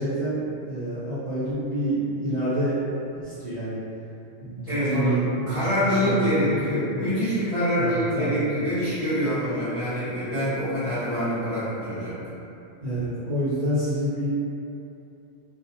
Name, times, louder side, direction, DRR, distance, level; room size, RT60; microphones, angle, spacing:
voice 1, 0.0-2.8 3.1-3.8 4.4-6.8 7.8-8.5 12.8-14.3, right 1 dB, 50° right, -14 dB, 0.5 m, -28 dB
voice 2, 4.7-12.2, equal, 45° left, -14 dB, 0.4 m, -25 dB
2.4 x 2.1 x 2.7 m, 2.7 s
omnidirectional pair, 1.4 m